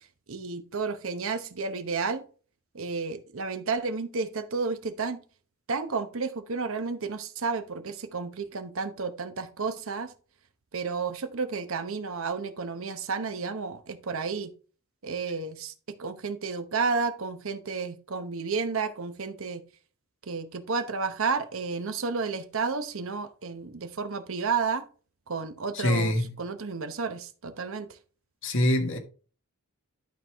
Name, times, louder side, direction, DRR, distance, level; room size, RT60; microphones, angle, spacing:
voice 1, 0.3-2.2 2.7-5.2 5.7-10.1 10.7-14.5 15.0-15.7 16.0-19.6 20.3-24.8 25.3-27.9, right 4 dB, 65° right, 0.9 m, -31 dB
voice 2, 25.7-26.4 28.4-29.0, left 1 dB, 60° left, 1.5 m, -25 dB
11.5 x 4.7 x 3.4 m
head